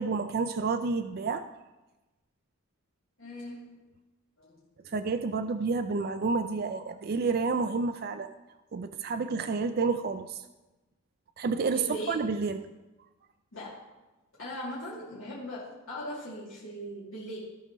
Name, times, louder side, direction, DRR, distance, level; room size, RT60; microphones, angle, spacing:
voice 1, 0.0-1.4 4.9-8.3 8.7-10.4 11.4-12.6, right 4 dB, 45° right, 9 dB, 0.4 m, -29 dB
voice 2, 3.2-3.8 4.4-4.9 11.7-12.1 13.5-13.8 14.4-17.4, equal, 85° left, -9 dB, 2.7 m, -39 dB
17.0 x 5.7 x 3.0 m, 1.1 s
head